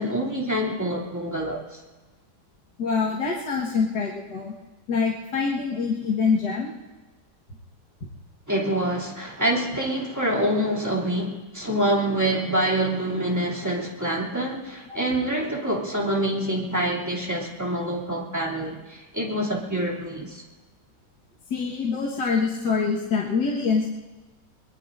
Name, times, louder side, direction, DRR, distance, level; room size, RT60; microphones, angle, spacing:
voice 1, 0.0-1.8 8.5-20.4, right 1 dB, 10° right, -3 dB, 2.8 m, -26 dB
voice 2, 2.8-4.5 4.9-6.7 14.9-15.0 21.5-23.9, left 5 dB, 75° left, -3 dB, 2.2 m, -25 dB
23.0 x 21.0 x 2.7 m, 1.2 s
omnidirectional pair, 1.8 m